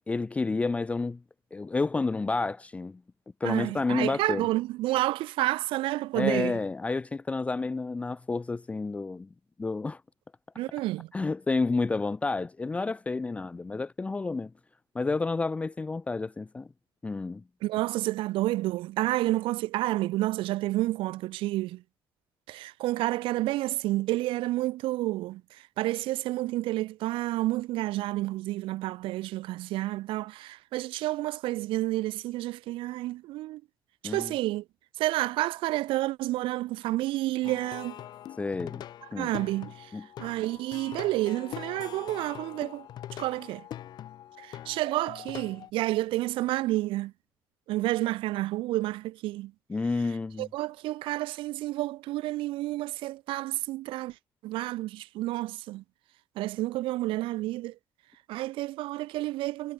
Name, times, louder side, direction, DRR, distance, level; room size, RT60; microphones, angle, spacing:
voice 1, 0.1-1.2 1.5-3.0 3.4-4.5 6.1-9.3 9.6-10.0 11.1-14.5 14.9-16.7 17.0-17.4 34.0-34.3 38.4-38.8 39.1-39.3 39.9-40.1 49.7-50.5, left 3 dB, 15° left, 0.5 m, -30 dB
voice 2, 3.4-6.6 10.6-11.1 17.6-21.8 22.5-25.4 25.8-33.6 34.0-34.6 35.0-37.9 39.2-39.9 40.2-42.9 43.1-43.6 44.4-47.1 47.7-49.5 50.4-54.1 54.4-55.8 56.4-57.7 58.3-59.7, right 17 dB, 75° right, 0.5 m, -30 dB
Plucked string instrument, 37.4-45.7, left 11 dB, 50° left, 0.8 m, -43 dB
cardioid pair, 150°, 9 cm